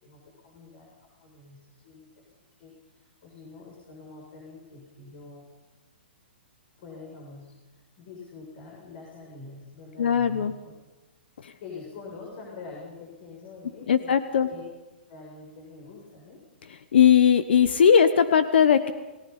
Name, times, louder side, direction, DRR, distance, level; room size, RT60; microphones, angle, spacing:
voice 1, 0.0-0.9 1.2-2.3 2.6-5.5 6.8-10.6 11.6-14.2 14.5-14.6 15.1-16.4, left 3 dB, 50° left, -2 dB, 6.9 m, -45 dB
voice 2, 10.0-10.5 11.4-11.5 13.9-14.5 16.9-18.9, left 7 dB, 70° left, 13 dB, 1.1 m, -19 dB
30.0 x 17.5 x 5.6 m, 1.2 s
hypercardioid pair, 125°, 6 cm